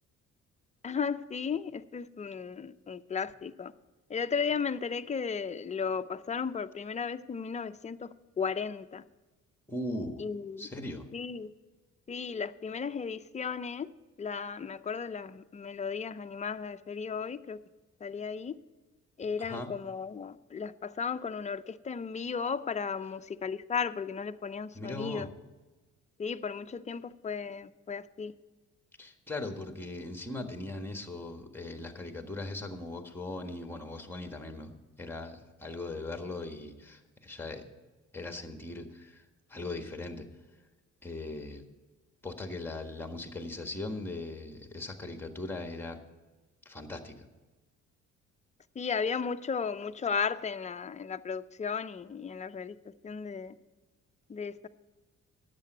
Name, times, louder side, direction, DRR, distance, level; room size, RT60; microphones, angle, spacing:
voice 1, 0.8-3.7 4.1-8.1 8.4-9.0 10.2-10.7 11.1-11.5 12.1-13.9 14.2-17.6 18.0-18.5 19.2-25.3 26.2-28.3 48.8-52.8 53.0-53.6 54.3-54.7, left 6 dB, 25° left, 10 dB, 0.5 m, -35 dB
voice 2, 9.7-10.2 10.6-11.1 19.4-19.7 24.7-25.3 29.0-34.7 35.0-37.6 38.1-39.2 39.5-40.3 41.0-41.6 42.2-46.0 46.6-47.2, left 2 dB, 5° left, 6 dB, 1.5 m, -39 dB
10.5 x 7.6 x 8.0 m, 1.2 s
cardioid pair, 90°, 30 cm